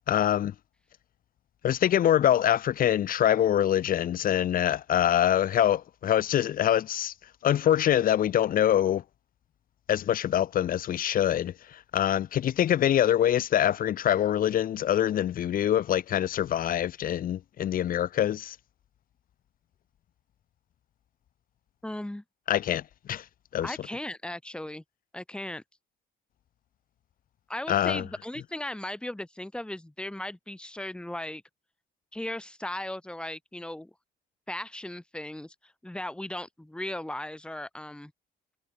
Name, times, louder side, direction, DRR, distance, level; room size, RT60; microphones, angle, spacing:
voice 1, 0.1-0.5 1.6-7.1 7.4-9.0 9.9-18.6 22.5-22.8 23.1-23.2 23.5-23.8 27.7-28.0, left 11 dB, 55° left, 2.9 m, -24 dB
voice 2, 21.8-22.2 23.6-24.8 25.1-25.6 27.5-31.4 32.1-33.9 34.5-38.1, left 1 dB, 5° left, 6.6 m, -37 dB
cardioid pair, 110°, 17 cm